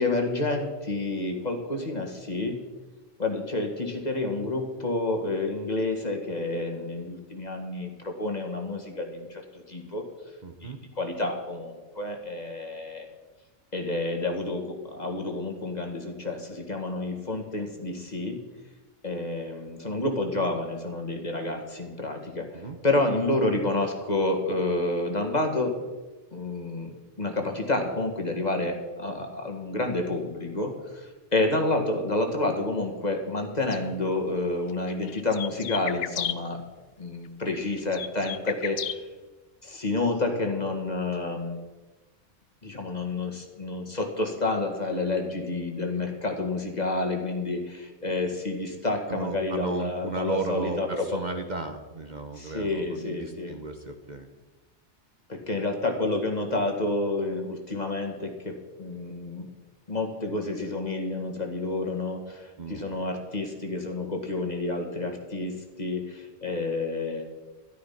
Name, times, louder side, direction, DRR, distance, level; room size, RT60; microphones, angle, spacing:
voice 1, 0.0-2.6 3.2-9.4 9.7-10.0 10.6-13.1 13.7-18.4 19.0-25.8 26.3-36.6 37.0-39.0 39.6-41.6 42.6-51.2 52.4-53.5 55.3-59.5 59.9-67.3, left 2 dB, 35° left, 3 dB, 2.1 m, -29 dB
voice 2, 10.4-10.8 22.5-22.8 49.1-54.3 62.6-62.9, right 3 dB, 40° right, 6 dB, 1.0 m, -34 dB
sound 1, 33.7-33.8 34.7-36.3 37.5-39.0, left 10 dB, 60° left, 0.8 m, -33 dB
13.0 x 12.0 x 5.9 m, 1.2 s
omnidirectional pair, 1.2 m